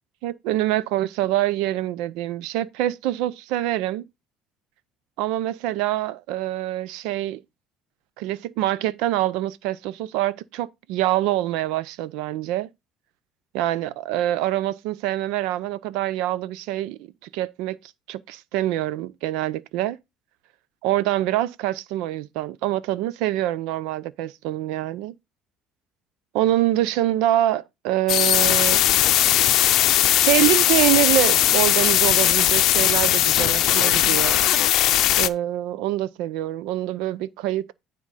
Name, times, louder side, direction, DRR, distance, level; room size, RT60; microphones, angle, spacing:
voice 1, 0.2-4.0 5.2-7.4 8.2-12.7 13.5-17.8 18.1-20.0 20.8-25.1 26.3-28.8 30.2-34.4 35.2-37.7, right 14 dB, 85° right, 0.6 m, -25 dB
sound 1, 28.1-35.3, left 13 dB, 60° left, 0.6 m, -19 dB
9.6 x 3.8 x 5.6 m
cardioid pair, 135°, 0 cm